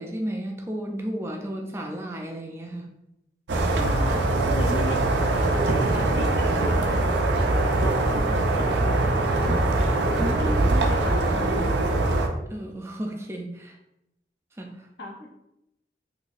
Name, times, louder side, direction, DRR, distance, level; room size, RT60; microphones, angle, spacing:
voice 1, 0.0-2.9 10.2-10.9 12.5-13.8 14.6-14.7, equal, 15° right, 2 dB, 0.3 m, -33 dB
sound 1, 3.5-12.3, right 2 dB, 85° right, 0.5 m, -22 dB
voice 2, 3.7-11.9 15.0-15.3, left 1 dB, 80° left, 2 dB, 0.7 m, -38 dB
4.0 x 2.7 x 2.4 m, 0.86 s
head